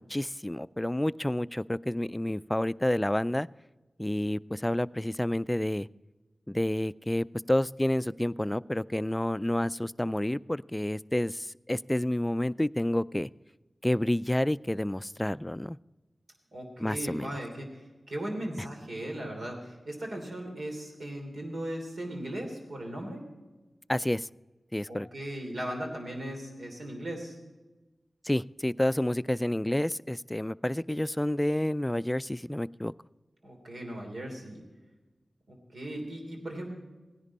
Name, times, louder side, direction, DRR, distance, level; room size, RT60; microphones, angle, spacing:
voice 1, 0.0-3.5 4.0-5.9 6.5-13.3 13.8-15.8 16.8-17.3 23.9-24.3 24.7-25.1 28.2-32.9, left 1 dB, 15° left, 17 dB, 0.3 m, -29 dB
voice 2, 16.5-23.3 24.9-27.4 33.4-34.6 35.5-36.7, right 1 dB, 75° right, 2 dB, 3.1 m, -38 dB
16.5 x 10.5 x 4.2 m, 1.2 s
cardioid pair, 45°, 0 cm